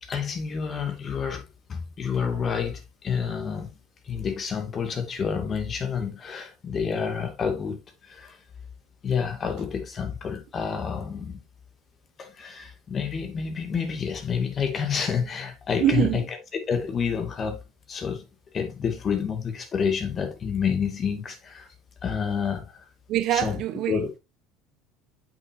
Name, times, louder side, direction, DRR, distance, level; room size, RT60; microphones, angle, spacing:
voice 1, 0.0-1.4 1.7-3.7 4.1-8.4 9.0-11.4 12.2-16.2 16.5-17.6 17.9-18.3 18.5-21.7 22.0-22.8 23.3-23.6 23.9-24.1, left 6 dB, 35° left, 2.2 m, -29 dB
voice 2, 15.8-16.2 23.1-24.2, right 12 dB, 55° right, 0.9 m, -24 dB
8.0 x 6.3 x 2.7 m
hypercardioid pair, 75°, 0 cm